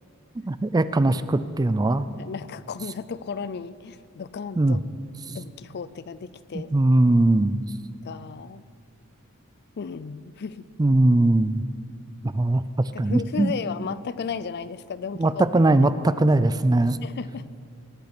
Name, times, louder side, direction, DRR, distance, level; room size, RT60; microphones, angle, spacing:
voice 1, 0.4-2.1 4.6-4.8 6.5-7.6 10.8-11.6 12.3-12.6 13.0-13.5 15.2-17.0, right 2 dB, 20° right, 14 dB, 0.4 m, -20 dB
voice 2, 2.2-4.8 5.3-6.7 8.0-8.6 9.8-10.6 12.9-15.4 17.0-17.5, left 5 dB, 50° left, 16 dB, 0.4 m, -34 dB
19.0 x 8.7 x 6.0 m, 2.4 s
head